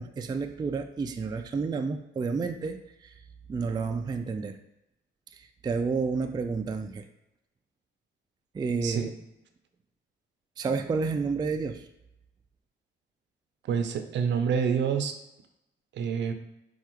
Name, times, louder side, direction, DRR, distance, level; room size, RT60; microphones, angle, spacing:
voice 1, 0.0-3.2 3.5-4.6 5.3-7.1 8.5-9.1 10.6-11.9, right 4 dB, 20° right, 5 dB, 0.3 m, -30 dB
voice 2, 13.7-15.1 15.9-16.3, right 7 dB, 65° right, 7 dB, 0.6 m, -27 dB
4.6 x 2.4 x 4.4 m, 0.89 s
cardioid pair, 90°, 20 cm